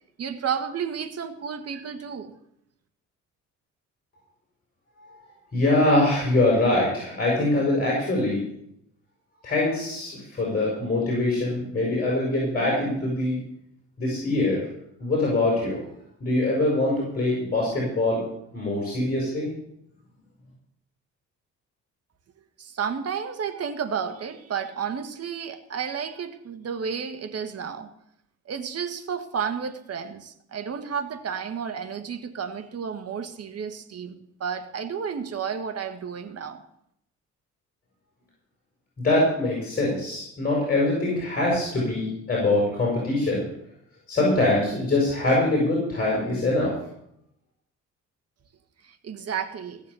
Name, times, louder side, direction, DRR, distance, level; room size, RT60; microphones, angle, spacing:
voice 1, 0.2-2.3 22.6-27.9 28.4-36.6 48.8-49.8, right 7 dB, 55° right, 7 dB, 1.8 m, -32 dB
voice 2, 5.5-8.4 9.4-13.4 14.0-14.7 15.0-15.8 16.2-18.2 18.5-19.5 39.0-43.4 44.1-46.7, left 2 dB, 30° left, -3 dB, 6.7 m, -23 dB
16.5 x 7.2 x 8.4 m, 0.76 s
cardioid pair, 90°, 30 cm